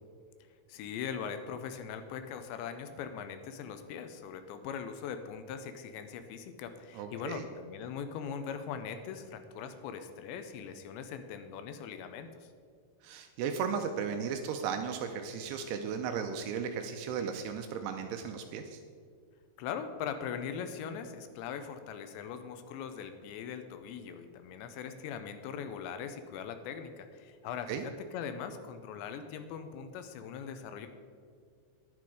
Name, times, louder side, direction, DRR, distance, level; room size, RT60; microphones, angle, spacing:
voice 1, 0.7-12.5 19.6-30.9, left 7 dB, 80° left, 9 dB, 2.8 m, -41 dB
voice 2, 7.0-7.4 13.0-18.8 27.7-27.9, right 6 dB, 90° right, 6 dB, 2.4 m, -35 dB
11.0 x 10.5 x 4.9 m, 2.1 s
omnidirectional pair, 5.4 m